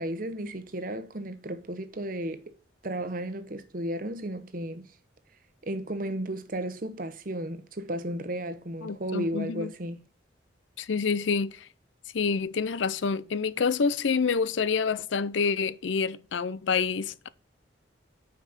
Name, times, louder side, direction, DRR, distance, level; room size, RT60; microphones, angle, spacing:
voice 1, 0.0-2.6 2.8-4.9 5.6-10.0, right 1 dB, 45° right, 0.9 m, -34 dB
voice 2, 8.8-9.7 10.8-11.7 12.1-17.3, left 5 dB, 75° left, 0.5 m, -27 dB
9.4 x 5.1 x 4.1 m
head